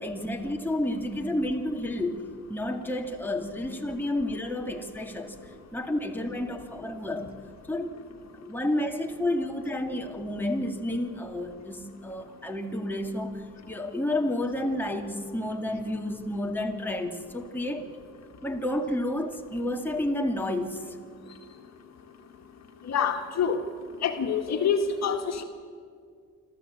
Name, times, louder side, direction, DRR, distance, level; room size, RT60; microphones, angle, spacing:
voice 1, 0.0-2.2 2.5-7.3 7.7-8.0 8.4-17.9 18.4-21.0, left 1 dB, 5° left, 2 dB, 2.2 m, -30 dB
voice 2, 22.9-23.6 24.0-25.4, left 6 dB, 60° left, 4 dB, 1.8 m, -26 dB
26.0 x 14.0 x 8.6 m, 2.2 s
cardioid pair, 90°, 30 cm